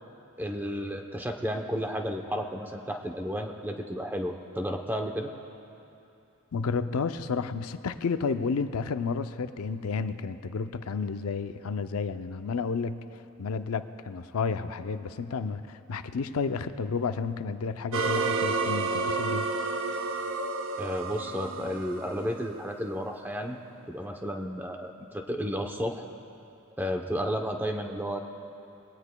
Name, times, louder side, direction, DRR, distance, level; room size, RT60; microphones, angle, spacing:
voice 1, 0.4-5.3 20.8-23.6 23.9-26.0 26.8-28.2, equal, 10° right, 3 dB, 0.7 m, -32 dB
voice 2, 6.5-19.5, left 5 dB, 80° left, 10 dB, 0.5 m, -31 dB
sound 1, 17.9-22.9, right 3 dB, 60° right, 0.6 m, -30 dB
22.0 x 18.0 x 2.2 m, 2.7 s
head